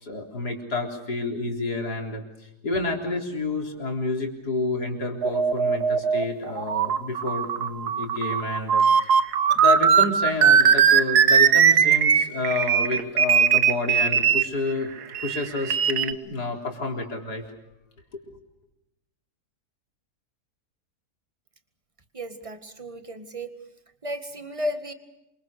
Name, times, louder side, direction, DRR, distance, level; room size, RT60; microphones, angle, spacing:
voice 1, 0.0-8.8 9.2-14.9 15.2-17.4 18.1-18.2, left 3 dB, 85° left, 2 dB, 4.5 m, -29 dB
sound 1, 5.2-14.5 15.1-16.1, right 7 dB, 80° right, 1.7 m, -19 dB
voice 2, 22.1-23.5 24.0-24.9, equal, 20° right, 9 dB, 1.9 m, -33 dB
27.5 x 25.0 x 6.8 m, 0.91 s
omnidirectional pair, 1.7 m